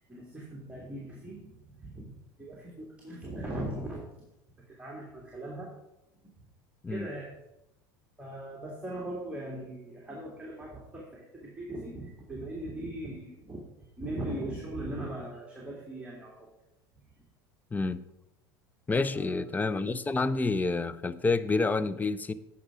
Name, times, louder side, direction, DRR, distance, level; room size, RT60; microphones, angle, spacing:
voice 1, 0.1-4.1 4.7-5.7 6.9-7.3 8.2-13.6 14.0-16.5 19.1-20.0, right 1 dB, 10° right, -3 dB, 2.1 m, -39 dB
voice 2, 18.9-22.3, left 3 dB, 15° left, 14 dB, 0.5 m, -28 dB
8.7 x 5.6 x 4.8 m, 0.86 s
hypercardioid pair, 85°, 11 cm